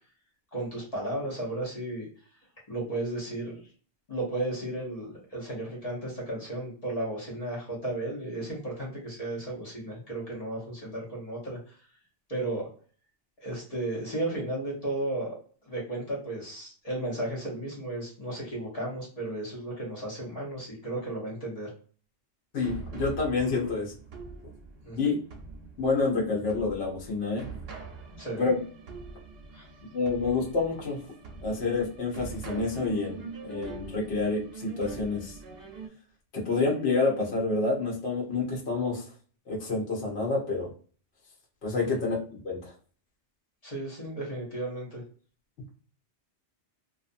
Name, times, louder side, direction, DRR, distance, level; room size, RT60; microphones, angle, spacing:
voice 1, 0.5-2.1 2.7-3.6 4.1-11.6 12.3-12.7 13.4-15.4 15.7-21.7 24.8-25.2 28.2-28.4 29.5-29.7 41.8-42.1 43.6-45.0, right 1 dB, 35° left, -5 dB, 0.8 m, -34 dB
voice 2, 22.5-23.9 25.0-25.2 25.8-27.4 28.4-28.6 29.9-31.0 31.4-35.4 36.3-39.0 39.5-40.7 41.6-42.7, left 3 dB, 65° left, -3 dB, 1.0 m, -28 dB
sound 1, 22.6-35.9, right 5 dB, 65° right, 0.8 m, -44 dB
2.4 x 2.4 x 2.5 m, 0.44 s
omnidirectional pair, 1.2 m